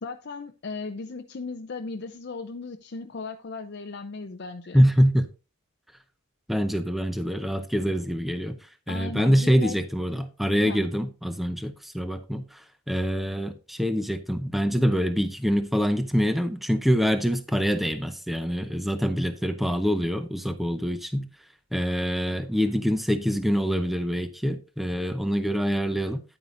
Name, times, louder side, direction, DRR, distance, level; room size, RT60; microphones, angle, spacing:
voice 1, 0.0-4.8 8.9-9.8 10.7-10.8, left 4 dB, 50° left, 0.5 m, -36 dB
voice 2, 4.7-5.3 6.5-8.6 8.9-12.6 12.9-21.3 21.7-26.2, equal, ahead, 0.6 m, -25 dB
9.8 x 9.1 x 2.5 m
head